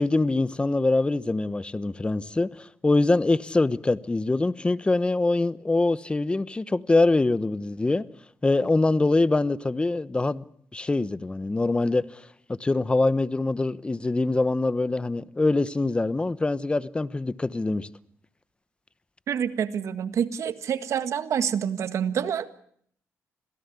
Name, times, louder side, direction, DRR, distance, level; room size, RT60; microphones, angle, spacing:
voice 1, 0.0-8.0 8.4-10.4 10.7-12.0 12.6-17.9, left 2 dB, 20° left, 1.1 m, -24 dB
voice 2, 19.3-22.6, right 8 dB, 70° right, 1.8 m, -27 dB
26.5 x 17.0 x 8.4 m
cardioid pair, 85°, 5 cm